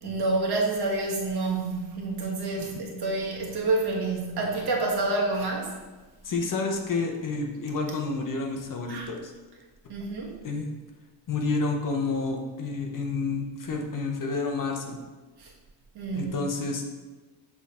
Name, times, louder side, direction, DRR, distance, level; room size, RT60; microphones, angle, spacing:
voice 1, 0.0-5.7 8.9-9.1 9.9-10.4 15.4-15.5 15.9-16.4, right 2 dB, 55° right, -1 dB, 1.5 m, -28 dB
voice 2, 6.2-9.3 10.4-10.8 11.3-15.0 16.1-16.9, left 3 dB, 45° left, 2 dB, 0.9 m, -29 dB
7.1 x 3.5 x 4.2 m, 1.2 s
cardioid pair, 135°, 45 cm